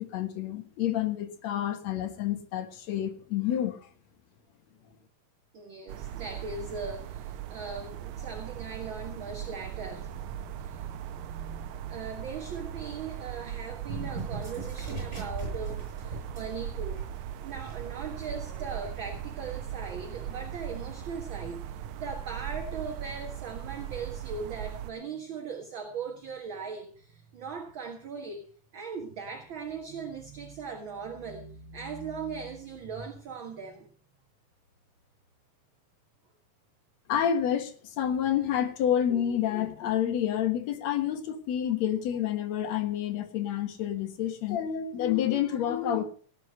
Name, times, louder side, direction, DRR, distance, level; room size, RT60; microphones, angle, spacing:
voice 1, 0.0-3.9 37.1-46.0, left 10 dB, 60° left, 2.3 m, -29 dB
voice 2, 5.5-17.1 17.4-33.9, right 5 dB, 45° right, 1.7 m, -39 dB
sound 1, 5.9-24.9, right 10 dB, 75° right, 1.9 m, -39 dB
sound 2, 13.9-16.6 16.9-17.1 17.5-21.1, right 2 dB, 20° right, 7.5 m, -41 dB
18.0 x 8.2 x 5.5 m
omnidirectional pair, 4.0 m